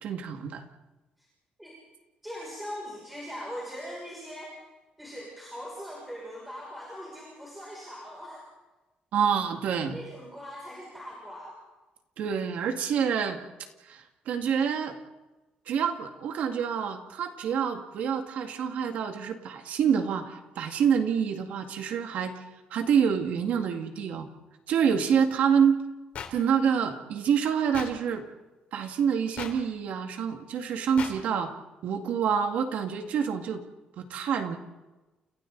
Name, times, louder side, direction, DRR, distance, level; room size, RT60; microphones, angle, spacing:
voice 1, 0.0-0.6 9.1-10.0 12.2-13.4 13.8-15.0 15.7-22.4 22.7-24.3 24.7-25.8 26.3-28.2 28.7-31.5 31.8-33.6 34.0-34.6, right 7 dB, 65° right, 5 dB, 2.1 m, -27 dB
voice 2, 2.2-4.5 5.0-8.4 9.9-11.6, equal, 5° right, -4 dB, 6.5 m, -40 dB
sound 1, 26.1-26.3 27.7-27.9 29.4-29.5 31.0-31.1, left 8 dB, 55° left, 3.5 m, -36 dB
29.5 x 29.0 x 4.0 m, 1.1 s
cardioid pair, 175°, 3 cm